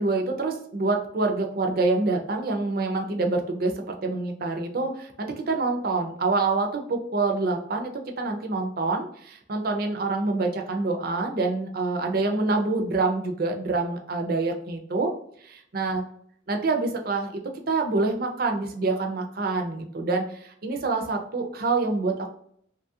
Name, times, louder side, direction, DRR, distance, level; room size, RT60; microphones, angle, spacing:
voice 1, 0.0-3.7 4.0-7.9 8.2-15.1 15.4-16.0 16.5-17.4 17.7-22.3, right 3 dB, 50° right, 3 dB, 0.5 m, -26 dB
2.9 x 2.3 x 2.7 m, 0.66 s
head